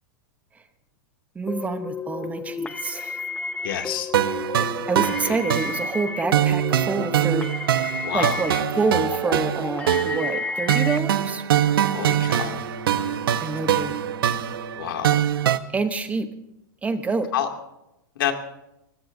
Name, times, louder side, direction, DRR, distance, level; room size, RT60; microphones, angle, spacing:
voice 1, 1.3-3.2 4.9-7.5 8.1-11.4 13.4-13.9 15.7-16.3 16.8-17.3, right 4 dB, 10° right, 9 dB, 0.9 m, -27 dB
sound 1, 1.5-11.0, left 5 dB, 10° left, 0.6 m, -32 dB
voice 2, 3.6-4.1 5.2-5.4 8.0-8.4 11.9-12.6 14.8-15.2 17.3-17.5 18.2-18.3, left 10 dB, 75° left, 3 dB, 2.5 m, -28 dB
sound 2, 4.1-15.6, right 10 dB, 85° right, 0.9 m, -23 dB
Bowed string instrument, 11.6-15.7, left 1 dB, 30° right, 4.2 m, -42 dB
24.0 x 19.5 x 2.7 m, 0.87 s
supercardioid pair, 145°, 12 cm